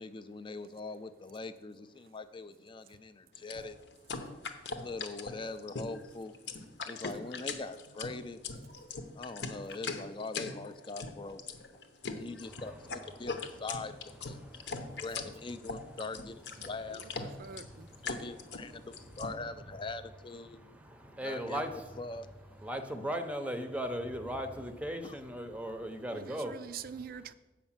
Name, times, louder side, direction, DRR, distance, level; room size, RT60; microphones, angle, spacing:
voice 1, 0.0-3.8 4.8-6.3 6.8-8.4 9.2-11.4 12.1-12.8 13.2-14.4 15.0-17.0 18.0-20.8 21.2-22.3 25.0-25.2, left 3 dB, 25° left, 11 dB, 0.4 m, -42 dB
sound 1, 3.3-19.3, left 4 dB, 65° left, 0.8 m, -40 dB
voice 2, 14.4-14.9 17.5-18.0 20.8-21.7 22.6-26.5, equal, 5° right, 7 dB, 0.7 m, -37 dB
voice 3, 17.4-17.9 26.1-27.3, right 7 dB, 50° right, 13 dB, 0.4 m, -44 dB
7.9 x 5.1 x 7.3 m, 1.1 s
head